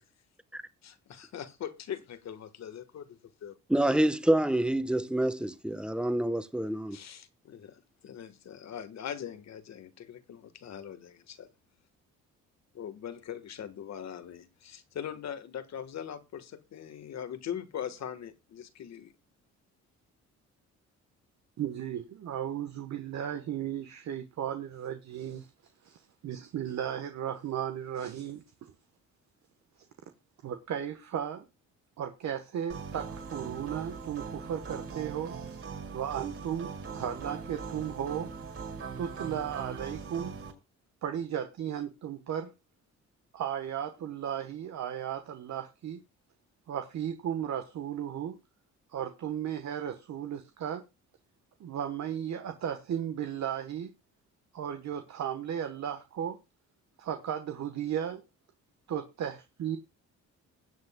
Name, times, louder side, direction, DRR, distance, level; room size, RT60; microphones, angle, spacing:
voice 1, 0.8-3.6 6.9-11.5 12.7-19.1, left 9 dB, 60° left, 1.6 m, -41 dB
voice 2, 3.7-7.0, right 1 dB, 5° right, 1.2 m, -27 dB
voice 3, 21.6-25.5 25.8-28.7 30.4-31.5 32.0-35.6 35.9-38.3 39.0-40.3 41.0-42.5 43.3-46.0 46.7-48.4 48.9-50.8 51.6-53.9 54.5-56.4 57.0-58.2 58.9-59.8, right 9 dB, 65° right, 1.3 m, -35 dB
sound 1, 32.7-40.5, right 5 dB, 45° right, 6.0 m, -40 dB
21.0 x 8.1 x 2.3 m
cardioid pair, 90°, 30 cm